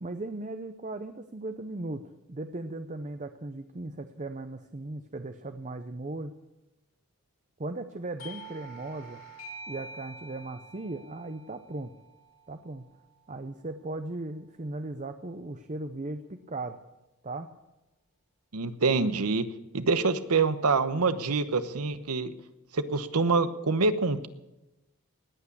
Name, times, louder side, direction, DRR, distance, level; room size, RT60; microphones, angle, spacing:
voice 1, 0.0-6.3 7.6-9.2 9.7-11.9 12.5-13.0 13.3-16.8 17.2-17.5, right 2 dB, 35° right, 8 dB, 0.7 m, -37 dB
Doorbell, 8.2-13.5, right 2 dB, 65° left, 2.9 m, -47 dB
voice 2, 18.5-19.4 19.7-22.3 22.7-24.3, right 4 dB, 85° right, 12 dB, 1.0 m, -26 dB
19.0 x 8.6 x 8.5 m, 0.99 s
head